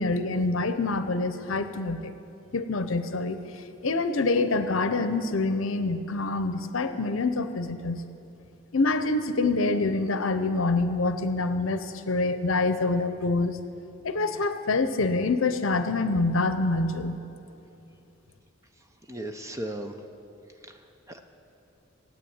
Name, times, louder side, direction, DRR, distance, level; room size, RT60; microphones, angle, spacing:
voice 1, 0.0-2.1 2.5-3.4 3.8-8.0 8.7-13.6 14.0-17.2, left 3 dB, 65° left, 10 dB, 0.7 m, -26 dB
voice 2, 19.1-20.0 20.6-21.2, right 1 dB, 15° right, 5 dB, 0.7 m, -37 dB
14.0 x 8.8 x 8.7 m, 2.7 s
head